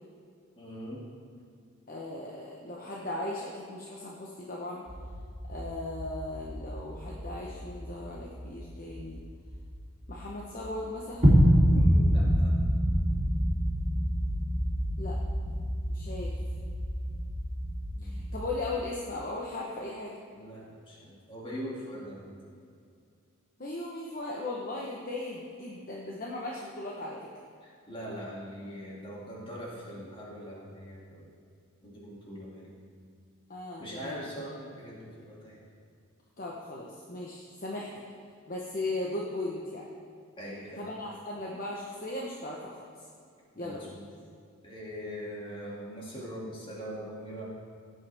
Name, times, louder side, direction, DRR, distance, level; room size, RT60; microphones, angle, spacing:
voice 1, 0.6-1.1 11.7-12.6 17.9-18.2 20.3-22.4 27.6-31.3 31.8-32.7 33.8-35.6 40.4-40.9 43.5-44.1 44.6-47.5, equal, 25° left, -5 dB, 2.5 m, -42 dB
voice 2, 1.9-4.9 5.5-9.2 10.1-11.4 15.0-15.2 15.4-16.4 18.0-20.1 23.6-27.3 33.5-34.3 36.4-38.0 38.5-39.9 40.7-43.1 43.6-44.0, left 2 dB, 40° left, -3 dB, 1.0 m, -37 dB
sound 1, 4.9-10.3 10.6-10.8 11.2-18.6, equal, 40° right, 2.8 m, -27 dB
16.5 x 8.7 x 3.5 m, 2.3 s
head